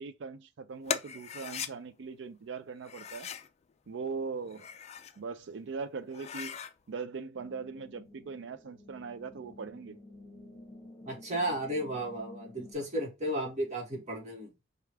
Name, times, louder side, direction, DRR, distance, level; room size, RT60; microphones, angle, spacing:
voice 1, 0.0-3.3 3.9-4.7 5.2-6.5 6.9-10.0, right 5 dB, 65° right, 0.4 m, -40 dB
sound 1, 0.9-1.7 2.8-3.5 4.4-5.2 5.6-5.7 6.1-6.7, left 8 dB, 35° left, 0.3 m, -38 dB
sound 2, 7.4-12.7, left 2 dB, 20° left, 1.2 m, -52 dB
voice 2, 11.1-14.5, right 1 dB, 35° right, 1.4 m, -34 dB
4.5 x 2.4 x 3.3 m
head